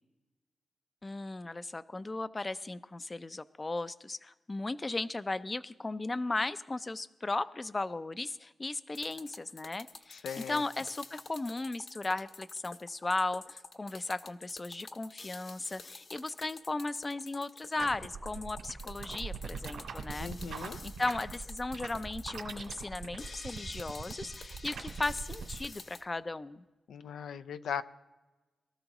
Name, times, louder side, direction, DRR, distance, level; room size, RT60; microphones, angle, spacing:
voice 1, 1.0-26.6, left 2 dB, 25° left, 14 dB, 0.5 m, -36 dB
sound 1, 8.9-26.0, left 4 dB, 50° left, 1.2 m, -49 dB
voice 2, 10.1-10.6 20.2-20.8 26.9-27.8, left 7 dB, 90° left, 12 dB, 0.6 m, -38 dB
sound 2, 17.8-25.7, right 5 dB, 85° right, 2.4 m, -42 dB
23.5 x 13.5 x 3.0 m, 1.1 s
cardioid pair, 90°, 0 cm